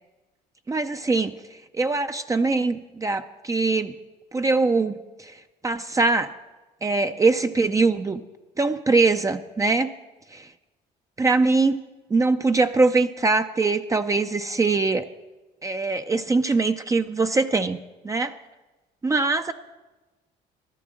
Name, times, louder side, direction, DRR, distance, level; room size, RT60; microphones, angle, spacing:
voice 1, 0.7-1.4 1.7-3.9 4.3-5.4 5.6-6.3 6.8-8.2 8.6-9.9 10.3-10.5 11.2-11.8 12.1-15.1 15.6-17.8 18.0-18.3 19.0-19.5, right 3 dB, 20° right, 8 dB, 0.5 m, -22 dB
14.0 x 11.5 x 7.5 m, 1.2 s
cardioid pair, 110°, 17 cm